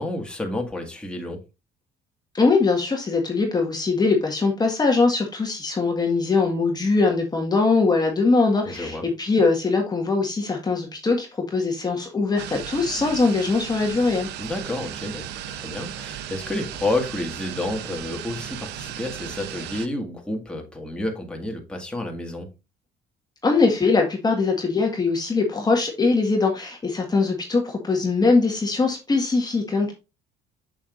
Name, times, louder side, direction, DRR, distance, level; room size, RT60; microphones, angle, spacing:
voice 1, 0.0-1.4 8.7-9.0 14.4-22.5, left 2 dB, 5° left, 1.9 m, -30 dB
voice 2, 2.3-14.3 23.4-29.9, left 3 dB, 25° left, 1.6 m, -21 dB
sound 1, 12.4-19.9, right 10 dB, 80° right, 0.8 m, -36 dB
7.1 x 6.7 x 2.6 m
cardioid pair, 110°, 17 cm